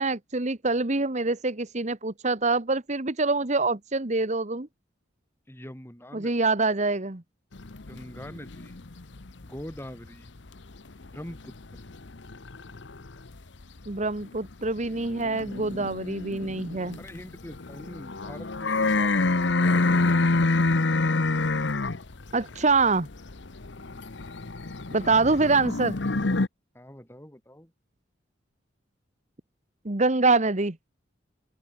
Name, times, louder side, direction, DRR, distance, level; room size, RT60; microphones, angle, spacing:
voice 1, 0.0-4.7 6.1-7.2 13.9-17.0 22.3-23.1 24.9-26.0 29.8-30.8, right 3 dB, 40° right, 1.4 m, -25 dB
voice 2, 5.5-6.5 7.8-8.8 9.4-10.3 11.1-11.8 17.0-20.2 23.9-24.1 25.1-25.6 26.7-27.7, equal, 15° left, 4.1 m, -44 dB
sound 1, 7.6-10.5 10.8-13.3 13.8-26.5, left 3 dB, 65° left, 1.0 m, -27 dB
open air
head